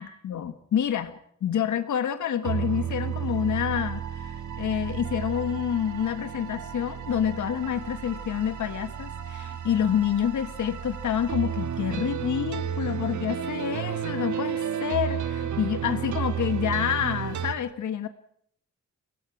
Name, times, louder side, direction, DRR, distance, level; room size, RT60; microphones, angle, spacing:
voice 1, 0.0-18.1, left 9 dB, 85° left, 10 dB, 1.5 m, -28 dB
sound 1, 2.4-17.5, right 9 dB, 85° right, 1.3 m, -32 dB
28.5 x 18.0 x 6.0 m, 0.65 s
wide cardioid pair, 175°, 29 cm